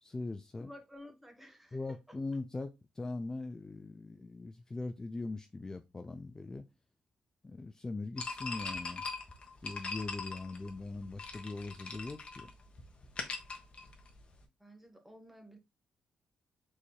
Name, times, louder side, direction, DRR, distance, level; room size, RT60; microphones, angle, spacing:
voice 1, 0.0-0.7 1.7-6.7 7.4-9.1 9.6-12.5 13.3-13.4, left 3 dB, 25° left, 0.5 m, -41 dB
voice 2, 0.6-2.2 14.6-15.6, left 1 dB, 5° right, 1.3 m, -53 dB
sound 1, 8.2-14.4, left 4 dB, 45° left, 1.2 m, -42 dB
4.7 x 4.2 x 2.3 m
cardioid pair, 85°, 3 cm